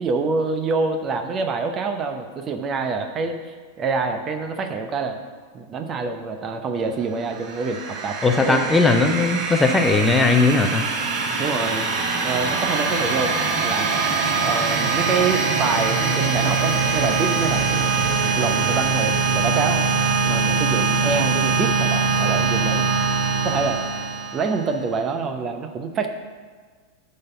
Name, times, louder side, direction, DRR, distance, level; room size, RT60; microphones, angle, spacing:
voice 1, 0.0-5.2 5.5-8.7 11.4-11.9 12.2-13.3 13.6-13.9 14.4-17.9 18.2-22.9 23.4-23.8 24.3-26.1, right 4 dB, 25° right, 6 dB, 0.8 m, -26 dB
sound 1, 7.2-24.8, right 4 dB, 45° right, 2.2 m, -23 dB
voice 2, 8.2-10.8, left 3 dB, 10° left, 4 dB, 0.7 m, -18 dB
10.0 x 4.2 x 6.8 m, 1.5 s
figure-of-eight pair, 90°, 0 cm